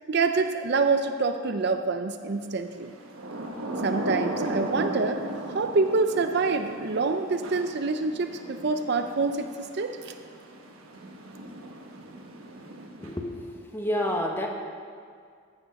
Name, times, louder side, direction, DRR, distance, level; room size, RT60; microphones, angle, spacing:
voice 1, 0.1-2.9 3.8-5.2 5.5-10.1, right 4 dB, 50° right, 7 dB, 0.5 m, -26 dB
Thunder / Rain, 2.9-13.5, right 1 dB, 85° right, 1.2 m, -36 dB
voice 2, 13.0-13.4 13.7-14.5, left 1 dB, 10° left, 1 dB, 1.0 m, -28 dB
14.5 x 7.2 x 5.3 m, 2.2 s
head